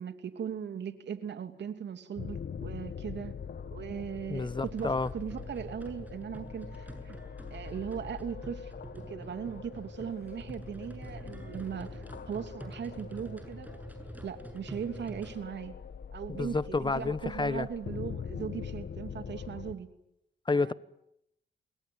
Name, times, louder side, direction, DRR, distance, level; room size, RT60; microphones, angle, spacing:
voice 1, 0.0-7.2 7.5-13.7 14.2-15.8 16.1-19.9 20.5-20.7, right 8 dB, 70° right, 2.8 m, -39 dB
sound 1, 2.1-19.7, left 7 dB, 60° left, 1.6 m, -43 dB
voice 2, 4.3-5.1 16.3-17.7 20.5-20.7, left 3 dB, 25° left, 1.1 m, -30 dB
sound 2, 4.6-15.4, right 1 dB, 10° right, 7.5 m, -46 dB
28.5 x 21.5 x 9.5 m
cardioid pair, 75°, 19 cm